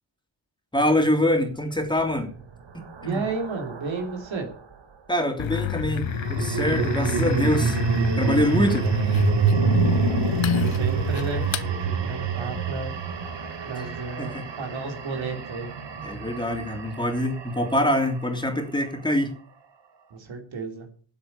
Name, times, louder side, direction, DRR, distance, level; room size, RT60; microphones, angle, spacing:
voice 1, 0.7-2.3 2.7-3.2 5.1-7.8 8.2-8.9 13.7-13.9 14.2-14.4 16.0-19.3, left 1 dB, 10° left, 3.2 m, -25 dB
sound 1, 1.9-4.4 6.0-18.3, right 7 dB, 65° right, 2.2 m, -27 dB
voice 2, 3.0-4.5 10.0-10.4 10.7-12.9 13.7-15.7 20.1-20.9, right 4 dB, 80° right, 3.6 m, -33 dB
sound 2, 5.4-11.7, left 9 dB, 85° left, 1.0 m, -28 dB
13.0 x 7.9 x 8.3 m
cardioid pair, 70°, 46 cm